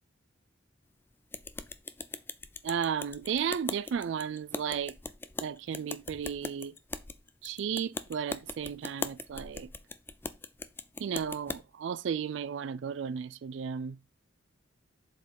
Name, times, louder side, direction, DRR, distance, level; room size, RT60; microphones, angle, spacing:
sound 1, 1.3-11.6, left 3 dB, 10° left, 0.4 m, -40 dB
voice 1, 2.6-5.0 5.4-6.7 7.4-9.7 11.0-14.0, right 7 dB, 70° right, 0.3 m, -34 dB
7.6 x 4.5 x 5.2 m
head